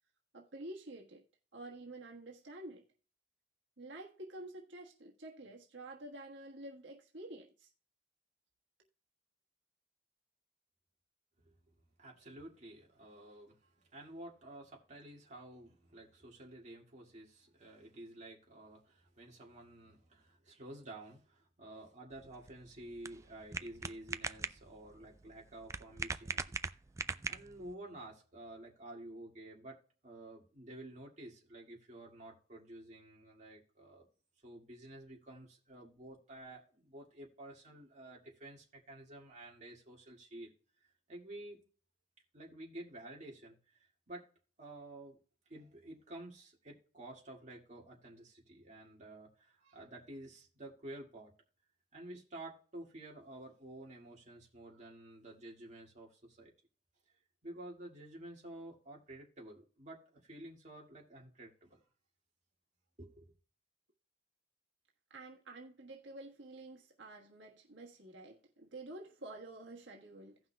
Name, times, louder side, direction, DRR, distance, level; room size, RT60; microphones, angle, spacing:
voice 1, 0.3-1.2 1.5-2.8 3.8-7.7 65.1-70.4, right 2 dB, 85° right, 1.4 m, -49 dB
voice 2, 12.0-26.6 27.3-34.1 34.4-40.5 40.8-41.6 42.3-44.3 44.6-45.2 45.5-51.3 51.9-56.5 57.4-61.8 63.0-63.3, right 1 dB, 40° right, 2.1 m, -51 dB
sound 1, 22.1-27.7, right 4 dB, 15° right, 0.3 m, -42 dB
17.0 x 5.8 x 2.3 m
head